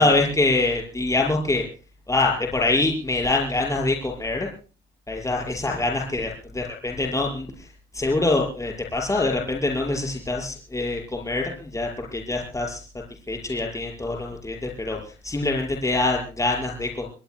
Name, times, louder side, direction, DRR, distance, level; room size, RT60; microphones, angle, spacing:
voice 1, 0.0-1.6 2.1-4.5 5.1-7.7 7.9-12.8 13.3-17.1, left 2 dB, 15° left, 0 dB, 5.8 m, -24 dB
27.5 x 19.5 x 2.3 m, 0.36 s
cardioid pair, 90°, 20 cm